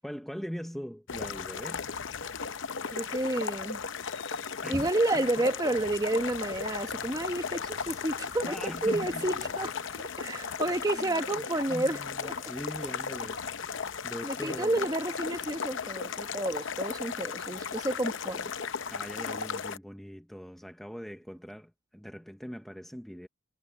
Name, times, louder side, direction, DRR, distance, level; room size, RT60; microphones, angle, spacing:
voice 1, 0.0-1.8 4.6-4.9 5.1-5.4 8.4-9.5 10.9-11.2 11.7-13.5 14.0-14.9 18.9-23.3, equal, ahead, 0.8 m, -41 dB
sound 1, 1.1-19.8, left 6 dB, 60° left, 0.8 m, -36 dB
voice 2, 2.9-3.8 4.7-9.7 10.0-12.4 14.2-18.5, right 2 dB, 20° right, 1.2 m, -30 dB
head